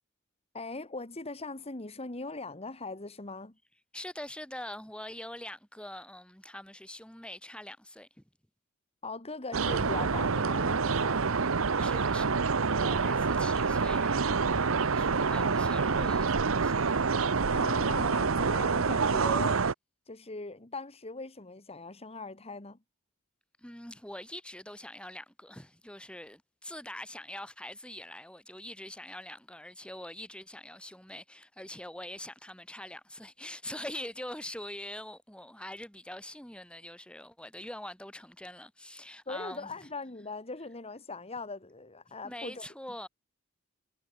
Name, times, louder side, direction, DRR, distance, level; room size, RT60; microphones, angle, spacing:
voice 1, 0.5-3.5 9.0-11.3 17.5-19.6 20.1-22.8 39.3-42.7, left 3 dB, 30° left, 1.8 m, -40 dB
voice 2, 3.9-8.2 10.9-11.0 11.7-16.8 23.6-39.9 42.2-43.1, left 1 dB, 5° left, 3.7 m, -44 dB
sound 1, 9.5-19.7, right 5 dB, 70° right, 0.9 m, -27 dB
head